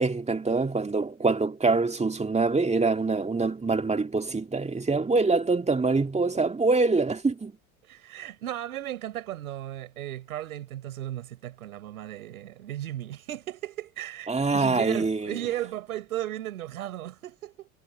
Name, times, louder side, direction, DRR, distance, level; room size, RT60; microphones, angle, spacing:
voice 1, 0.0-7.5 14.3-15.4, right 3 dB, 15° right, 2.1 m, -25 dB
voice 2, 7.8-17.7, right 13 dB, 90° right, 5.1 m, -36 dB
hypercardioid pair, 80°, 42 cm